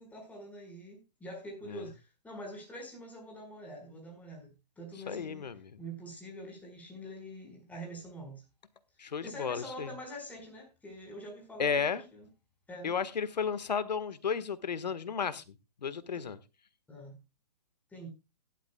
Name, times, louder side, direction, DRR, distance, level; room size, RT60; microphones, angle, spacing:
voice 1, 0.0-5.5 5.8-8.4 9.2-12.3 12.7-12.9 16.1-16.3 16.9-17.2 17.9-18.1, equal, 5° left, 4.8 m, -45 dB
voice 2, 5.1-5.8 9.0-9.9 11.6-12.0 12.8-15.4 15.8-16.4, left 6 dB, 80° left, 1.5 m, -33 dB
16.0 x 11.5 x 2.2 m
hypercardioid pair, 135°, 21 cm